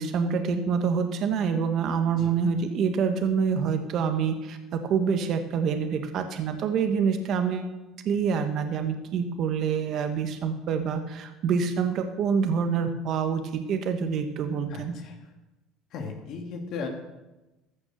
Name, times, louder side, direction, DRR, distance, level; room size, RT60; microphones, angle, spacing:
voice 1, 0.0-7.7 8.0-15.0, right 6 dB, 55° right, 7 dB, 1.3 m, -26 dB
voice 2, 14.7-15.2 15.9-16.9, left 5 dB, 60° left, 2 dB, 2.3 m, -36 dB
14.5 x 6.2 x 6.6 m, 1.0 s
supercardioid pair, 95°, 0 cm